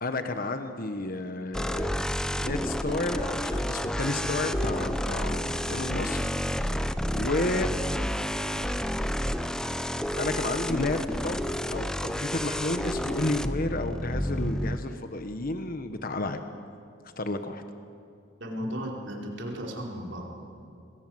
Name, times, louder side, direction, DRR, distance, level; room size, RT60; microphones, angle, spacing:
voice 1, 0.0-1.9 2.3-6.2 7.1-7.7 10.1-11.4 11.7-16.4 17.2-17.6, left 2 dB, 45° left, 8 dB, 1.2 m, -31 dB
sound 1, 1.5-14.8, equal, 5° left, 0.7 m, -30 dB
voice 2, 18.4-20.4, equal, 60° right, -1 dB, 4.8 m, -35 dB
27.5 x 22.0 x 7.9 m, 2.5 s
head